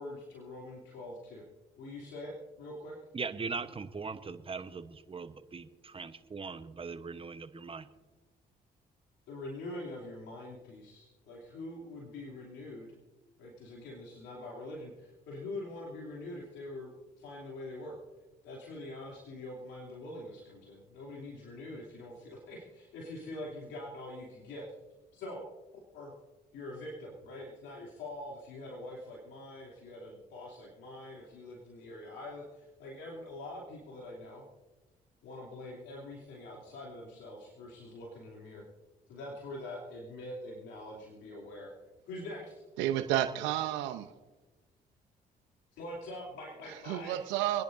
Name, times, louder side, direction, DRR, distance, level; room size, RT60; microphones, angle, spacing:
voice 1, 0.0-1.4 1.8-3.0 9.3-13.0 13.4-18.0 18.4-24.7 25.1-25.4 25.9-26.1 26.5-34.5 35.2-38.6 39.1-41.7 42.1-42.6 45.7-47.2, left 1 dB, 80° left, -4 dB, 3.0 m, -44 dB
voice 2, 3.1-7.9, right 4 dB, 30° right, 11 dB, 1.0 m, -40 dB
voice 3, 42.8-44.1 46.9-47.6, right 12 dB, 90° right, 10 dB, 0.7 m, -31 dB
28.5 x 10.5 x 2.6 m, 1.2 s
supercardioid pair, 65°, 19 cm